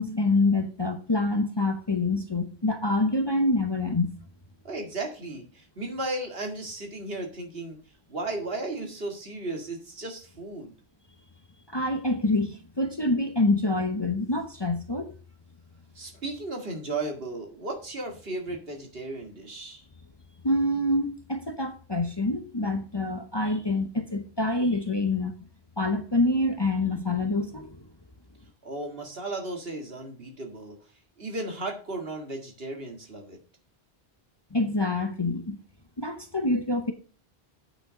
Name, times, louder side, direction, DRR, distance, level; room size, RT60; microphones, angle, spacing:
voice 1, 0.0-4.1 11.7-15.1 20.4-25.3 25.8-27.8 34.5-35.6 36.0-36.9, left 2 dB, 25° left, 0.8 m, -26 dB
voice 2, 4.6-7.8 8.1-10.7 15.9-19.8 28.6-30.8 31.2-33.4, right 2 dB, 65° right, 2.1 m, -35 dB
8.3 x 6.5 x 5.1 m
omnidirectional pair, 1.1 m